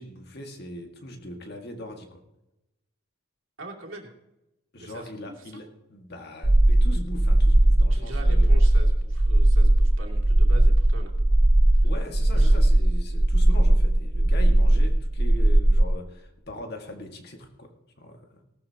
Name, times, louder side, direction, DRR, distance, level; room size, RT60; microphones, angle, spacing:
voice 1, 0.0-2.2 4.7-8.5 11.8-18.4, left 1 dB, 50° left, 4 dB, 1.9 m, -40 dB
voice 2, 3.6-4.1 4.8-5.3 7.9-11.2 12.3-12.6, right 1 dB, 65° right, 0 dB, 2.6 m, -42 dB
sound 1, 6.4-15.9, right 1 dB, 15° right, 0.3 m, -18 dB
18.5 x 13.0 x 2.9 m, 0.93 s
head